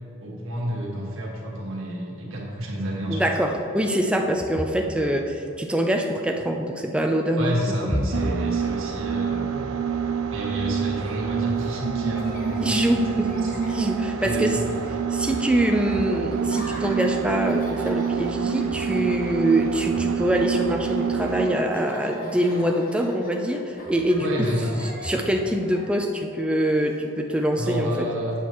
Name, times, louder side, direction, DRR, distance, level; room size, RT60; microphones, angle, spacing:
voice 1, 0.2-3.3 7.4-9.7 10.3-13.6 14.2-14.8 24.2-24.8 27.6-28.3, equal, 65° right, -3 dB, 1.6 m, -30 dB
voice 2, 3.1-7.5 12.6-13.3 13.7-14.6 15.1-24.5 25.0-28.1, right 1 dB, 5° right, 2 dB, 0.4 m, -24 dB
sound 1, 8.1-21.6, right 7 dB, 85° right, 0.4 m, -27 dB
Laughter, 10.8-27.6, equal, 40° left, 1.2 m, -43 dB
8.3 x 7.4 x 3.0 m, 2.9 s
head